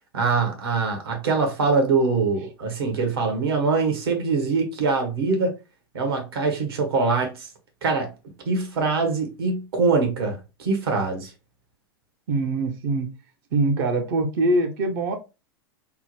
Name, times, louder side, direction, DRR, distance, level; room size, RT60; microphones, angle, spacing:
voice 1, 0.1-5.5 5.9-7.5 7.8-8.1 8.4-11.3, right 4 dB, 70° right, 1.1 m, -23 dB
voice 2, 12.3-13.1 13.5-15.2, right 2 dB, 55° right, 0.6 m, -23 dB
3.5 x 2.0 x 2.9 m
hypercardioid pair, 95°, 13 cm